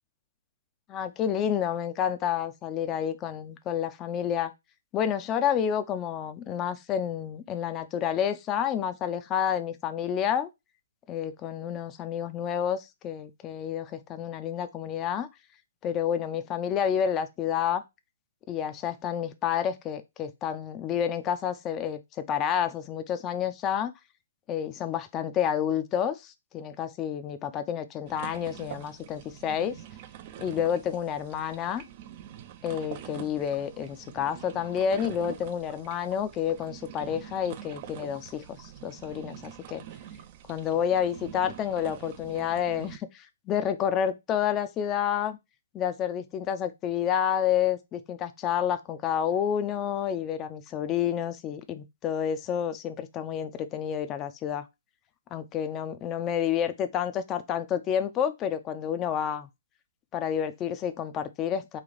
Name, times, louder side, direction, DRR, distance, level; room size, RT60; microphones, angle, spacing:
voice 1, 0.9-4.5 4.9-10.5 11.1-15.3 15.8-17.8 18.5-22.0 22.3-23.9 24.5-29.7 30.4-31.8 32.6-39.8 40.5-45.4 45.7-54.7 55.3-59.5 60.1-61.8, left 9 dB, 25° left, 0.5 m, -29 dB
sound 1, 28.1-43.0, right 11 dB, 40° right, 0.4 m, -45 dB
3.2 x 2.4 x 3.9 m
hypercardioid pair, 135°, 0 cm